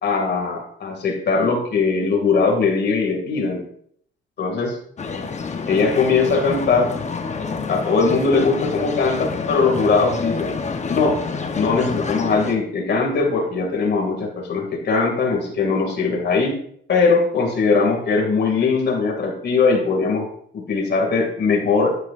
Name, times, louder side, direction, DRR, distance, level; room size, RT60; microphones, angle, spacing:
voice 1, 0.0-3.6 4.4-4.8 5.7-6.9 7.7-10.6 10.9-11.2 11.5-16.6 16.9-20.3 20.5-22.0, left 4 dB, 60° left, 2 dB, 2.4 m, -20 dB
sound 1, 5.0-12.5, left 4 dB, 35° left, 1.0 m, -28 dB
10.0 x 7.6 x 2.6 m, 0.63 s
cardioid pair, 90°, 20 cm